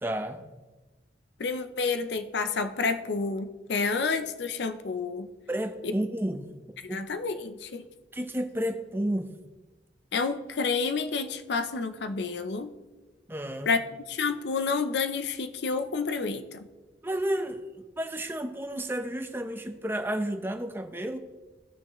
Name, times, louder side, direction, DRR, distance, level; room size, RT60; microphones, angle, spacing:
voice 1, 0.0-0.5 5.5-7.0 8.1-9.3 13.3-13.7 17.0-21.2, right 1 dB, 15° right, 7 dB, 0.6 m, -31 dB
voice 2, 1.4-5.3 6.8-7.8 10.1-12.7 13.7-13.8 14.1-16.7, left 4 dB, 75° left, 10 dB, 0.6 m, -29 dB
16.0 x 6.4 x 3.0 m, 1.2 s
head